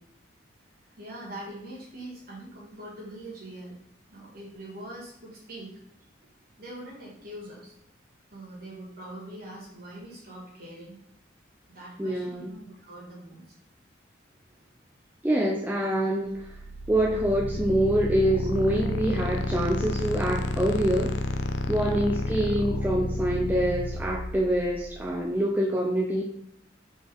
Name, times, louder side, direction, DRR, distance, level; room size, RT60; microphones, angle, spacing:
voice 1, 0.9-3.8 4.1-5.7 6.6-7.7 8.3-11.0 11.7-13.4, right 1 dB, 50° right, -4 dB, 1.8 m, -43 dB
voice 2, 12.0-12.5 15.2-16.5 16.9-21.2 21.7-26.2, right 1 dB, 10° right, -3 dB, 0.4 m, -25 dB
sound 1, 16.3-25.2, left 1 dB, 60° left, 0.4 m, -31 dB
3.9 x 3.8 x 3.5 m, 0.77 s
head